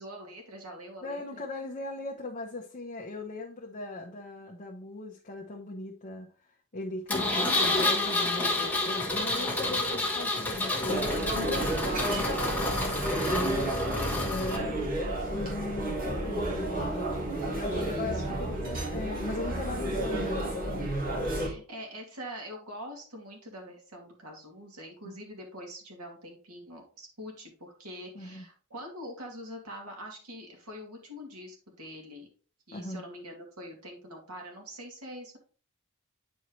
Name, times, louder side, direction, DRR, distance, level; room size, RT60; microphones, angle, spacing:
voice 1, 0.0-1.2 17.7-18.7 21.3-32.3 32.7-35.4, equal, 85° right, 0 dB, 2.5 m, -44 dB
voice 2, 1.0-13.7 14.2-17.0 17.5-20.6 25.1-25.2 28.1-28.4 32.7-33.1, left 2 dB, 35° left, 0 dB, 0.9 m, -39 dB
Engine, 7.1-14.6, left 2 dB, 10° left, 1.4 m, -29 dB
sound 1, 10.9-21.5, right 1 dB, 40° right, 2.2 m, -31 dB
9.3 x 4.5 x 3.2 m, 0.40 s
head